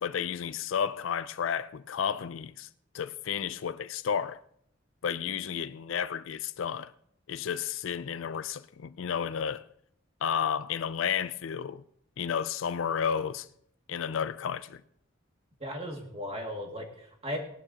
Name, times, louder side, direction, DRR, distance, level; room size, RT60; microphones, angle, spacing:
voice 1, 0.0-2.7 2.9-4.4 5.0-6.9 7.3-9.6 10.2-11.8 12.2-13.5 13.9-14.8, left 7 dB, 70° left, 0.4 m, -32 dB
voice 2, 15.6-17.4, equal, 30° right, 2.1 m, -36 dB
18.0 x 11.5 x 2.8 m
head